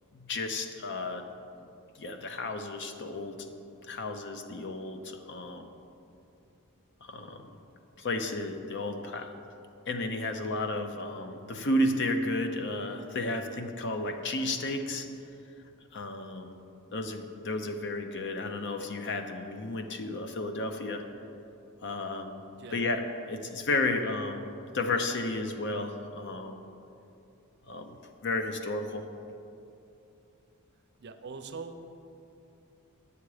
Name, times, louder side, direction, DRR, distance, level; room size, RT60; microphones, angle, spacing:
voice 1, 0.1-1.3 2.0-3.5 3.9-5.7 7.0-7.4 8.0-9.3 9.9-15.1 15.9-16.6 16.9-21.0 21.8-22.4 22.7-24.5 24.7-26.6 27.7-28.0 28.2-29.1, left 2 dB, 55° left, 6 dB, 0.7 m, -32 dB
voice 2, 31.0-31.8, right 4 dB, 50° right, 8 dB, 0.5 m, -42 dB
9.6 x 7.0 x 4.9 m, 2.7 s
head